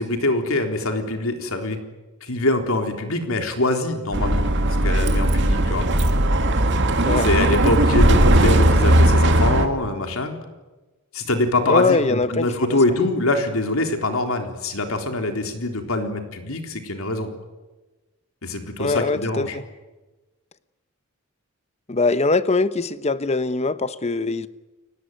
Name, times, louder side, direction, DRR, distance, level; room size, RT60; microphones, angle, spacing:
voice 1, 0.0-1.8 2.2-4.5 4.8-5.9 7.2-10.4 11.1-17.3 18.4-19.6, left 2 dB, 70° left, 5 dB, 3.8 m, -24 dB
Bus, 4.1-9.7, right 1 dB, 55° right, 2.4 m, -17 dB
voice 2, 11.7-12.8 18.8-19.6 21.9-24.5, left 3 dB, 30° left, 14 dB, 1.0 m, -22 dB
30.0 x 18.0 x 9.5 m, 1.2 s
head